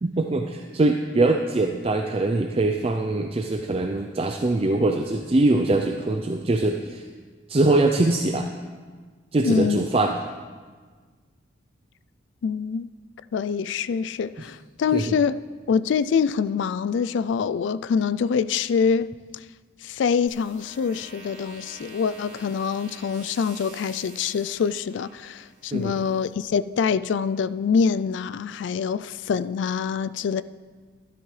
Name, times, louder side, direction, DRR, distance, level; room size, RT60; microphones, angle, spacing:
voice 1, 0.0-7.0 7.5-8.5 9.3-10.2 14.9-15.2 25.7-26.0, right 2 dB, 30° right, 0.4 m, -22 dB
voice 2, 9.4-9.8 12.4-12.9 13.3-15.4 15.7-19.1 19.8-30.4, left 6 dB, 70° left, 0.3 m, -25 dB
sound 1, 20.3-26.3, right 2 dB, 80° right, 3.4 m, -47 dB
12.5 x 12.5 x 3.2 m
head